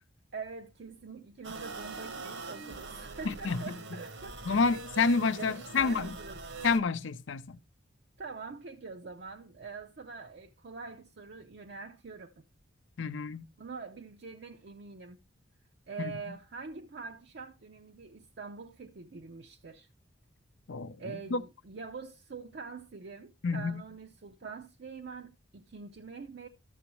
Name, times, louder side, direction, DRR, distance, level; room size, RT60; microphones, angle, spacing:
voice 1, 0.3-4.7 5.3-6.4 8.2-12.4 13.6-15.2 15.9-19.9 21.0-26.5, right 4 dB, 55° right, 0.5 m, -44 dB
sound 1, 1.4-6.8, right 3 dB, 75° right, 1.1 m, -43 dB
voice 2, 3.2-3.6 4.5-6.1 6.6-7.6 13.0-13.4 16.0-16.1 20.7-21.0 21.3-21.4 23.4-23.8, left 4 dB, 75° left, 0.5 m, -29 dB
12.5 x 6.9 x 3.0 m
head